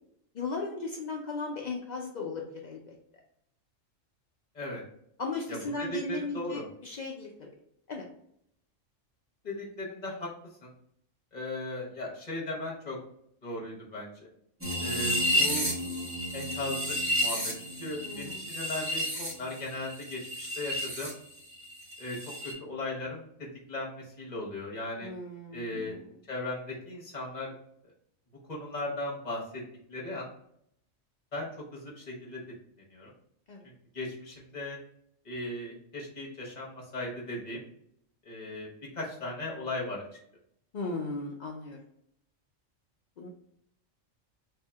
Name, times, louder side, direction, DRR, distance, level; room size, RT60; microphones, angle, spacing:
voice 1, 0.3-3.0 5.2-7.5 7.9-8.0 18.0-18.5 25.0-26.1 33.5-33.7 40.7-41.8 43.2-43.3, left 3 dB, 75° left, 0 dB, 0.4 m, -36 dB
voice 2, 5.5-6.6 9.4-10.3 10.6-10.7 11.3-13.0 13.4-14.3 14.8-15.7 16.3-21.1 22.0-22.2 22.6-23.3 23.7-25.1 25.5-26.0 26.3-27.5 28.5-29.6 29.9-30.3 31.3-32.4 32.9-33.1 33.9-34.8 35.2-37.6 38.2-38.7 38.9-40.0, left 1 dB, 35° left, -3 dB, 1.0 m, -37 dB
sound 1, 14.6-21.1 21.4-22.5, equal, 10° right, 1.2 m, -31 dB
3.4 x 2.7 x 3.4 m, 0.72 s
omnidirectional pair, 1.4 m